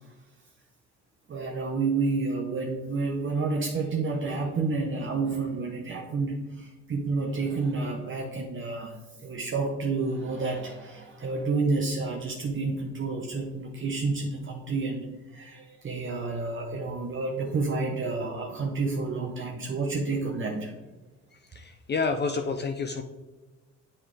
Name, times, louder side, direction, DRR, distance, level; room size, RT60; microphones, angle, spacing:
voice 1, 1.3-20.7, right 3 dB, 40° right, 1 dB, 0.9 m, -30 dB
voice 2, 21.3-23.0, left 4 dB, 35° left, 6 dB, 0.5 m, -29 dB
7.3 x 5.6 x 3.3 m, 1.2 s
cardioid pair, 90°, 30 cm